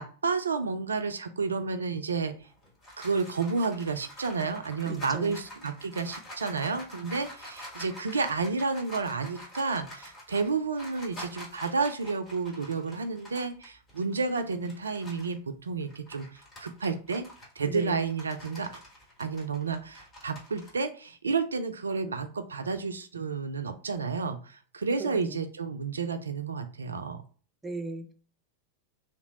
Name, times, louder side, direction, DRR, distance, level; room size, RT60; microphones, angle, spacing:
voice 1, 0.0-2.3 3.0-17.2 17.6-18.7 19.2-27.2, right 4 dB, 75° right, 8 dB, 0.3 m, -31 dB
sound 1, 2.4-15.4 15.8-20.7, equal, 25° left, 1.8 m, -47 dB
voice 2, 4.8-5.4 17.7-18.1 25.0-25.4 27.6-28.1, right 2 dB, 10° right, 5 dB, 0.5 m, -37 dB
3.2 x 2.9 x 2.8 m, 0.41 s
figure-of-eight pair, 90°, 0 cm